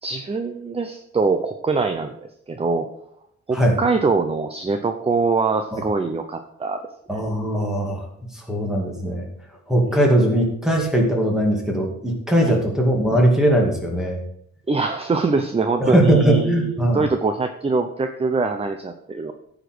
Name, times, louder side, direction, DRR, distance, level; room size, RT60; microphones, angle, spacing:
voice 1, 0.0-2.1 2.5-2.9 3.5-6.8 7.1-7.2 9.9-10.0 12.4-12.6 14.7-19.3, right 4 dB, 20° right, 7 dB, 0.7 m, -23 dB
voice 2, 7.1-8.1 8.3-9.3 9.7-14.2 15.8-17.0, right 1 dB, ahead, -1 dB, 2.5 m, -20 dB
14.5 x 5.2 x 6.1 m, 0.70 s
wide cardioid pair, 165°, 29 cm